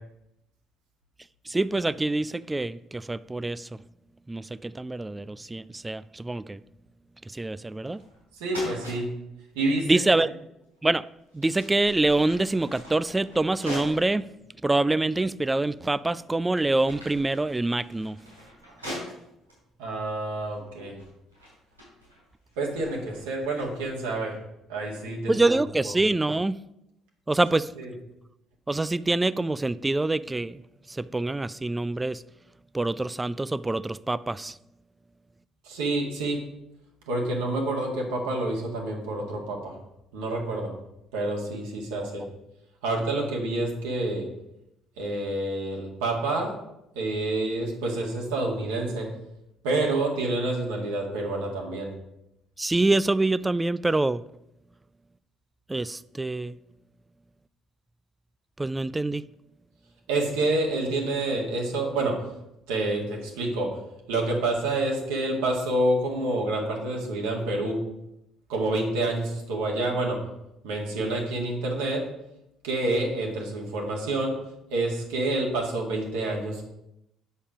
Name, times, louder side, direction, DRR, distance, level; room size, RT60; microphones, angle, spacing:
voice 1, 1.5-3.7 4.3-6.6 7.3-8.0 9.9-10.3 10.8-11.0 11.3-14.3 14.6-18.2 25.3-26.6 27.3-27.7 28.7-30.6 30.9-32.2 32.7-34.6 52.6-54.2 55.7-56.5 58.6-59.2, right 2 dB, 15° right, 0.3 m, -25 dB
sound 1, 7.8-8.2 8.5-9.0 10.6-10.8 11.3-14.1 14.7-14.8 15.6-16.0 16.4-19.5 20.4-20.7 21.0-24.0, equal, 90° right, 4.1 m, -42 dB
voice 2, 8.3-9.1 9.5-10.0 19.8-21.0 22.6-24.4 24.7-25.3 27.8-27.9 35.6-36.4 37.1-39.7 40.1-40.7 41.1-42.3 42.8-44.3 45.0-46.5 46.9-49.1 49.6-51.9 60.1-62.2 62.7-63.8 64.1-67.8 68.5-70.2 70.6-72.0 72.6-74.4 74.7-76.6, right 2 dB, 70° right, 2.0 m, -28 dB
8.4 x 7.2 x 5.0 m
figure-of-eight pair, 50°, 0 cm